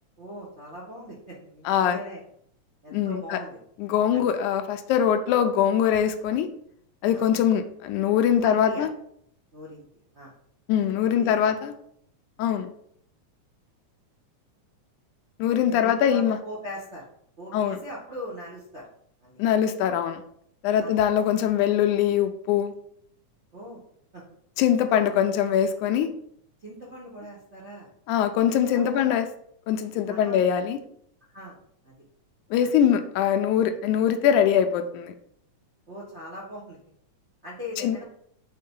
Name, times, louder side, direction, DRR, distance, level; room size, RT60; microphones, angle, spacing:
voice 1, 0.2-2.2 2.8-3.6 4.1-4.2 7.1-7.2 8.4-8.9 9.5-9.9 10.1-10.3 11.1-11.5 15.7-17.0 17.4-18.8 19.2-19.4 20.8-20.9 23.5-23.8 24.1-24.2 24.8-25.3 26.6-27.9 28.4-29.0 30.1-30.4 31.3-31.6 31.8-31.9 32.6-32.7 35.9-36.8 37.4-38.0, equal, 50° right, -4 dB, 0.7 m, -40 dB
voice 2, 1.7-2.0 2.9-3.4 3.8-6.5 7.0-8.9 10.7-11.7 12.4-12.7 15.4-16.4 17.5-17.8 19.4-20.2 20.6-22.7 24.6-26.1 28.1-29.3 29.7-30.8 32.5-35.1 37.8-38.0, left 9 dB, 90° left, 7 dB, 2.1 m, -22 dB
6.7 x 3.6 x 5.4 m, 0.68 s
omnidirectional pair, 3.5 m